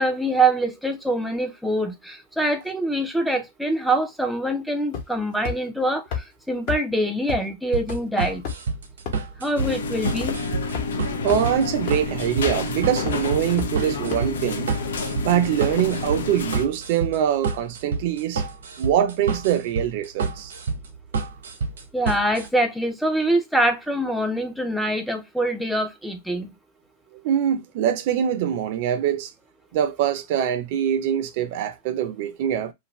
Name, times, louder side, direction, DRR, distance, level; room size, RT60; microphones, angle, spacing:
voice 1, 0.0-8.4 9.4-10.4 21.9-26.5, right 1 dB, ahead, 0.5 m, -24 dB
sound 1, 4.9-5.2 5.4-5.5 6.1-6.2 6.7-6.8 7.3-7.4 7.9-8.0 8.4-8.7 9.0-9.1 9.6-9.7 10.2-10.3 10.7-10.8 11.3-11.4 11.9-12.0 12.4-12.7 13.1-13.2 13.6-13.7 14.1-14.2, left 7 dB, 50° left, 1.0 m, -28 dB
sound 2, 7.7-22.5, right 4 dB, 85° right, 0.9 m, -29 dB
sound 3, 9.6-16.6, left 3 dB, 85° left, 0.6 m, -29 dB
voice 2, 11.2-14.7 15.2-18.4 18.8-20.5 27.2-29.3 29.7-32.7, right 10 dB, 55° right, 0.5 m, -23 dB
2.5 x 2.5 x 3.0 m
hypercardioid pair, 135°, 0 cm